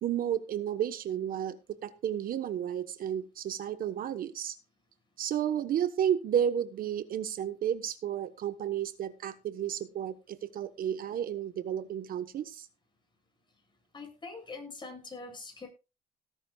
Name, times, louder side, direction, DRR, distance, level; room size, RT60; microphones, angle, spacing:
voice 1, 0.0-4.6 5.2-12.7, right 9 dB, 60° right, 11 dB, 1.2 m, -32 dB
voice 2, 13.9-15.7, left 3 dB, 25° left, 4 dB, 7.7 m, -43 dB
18.5 x 10.5 x 2.4 m, 0.30 s
cardioid pair, 110°, 17 cm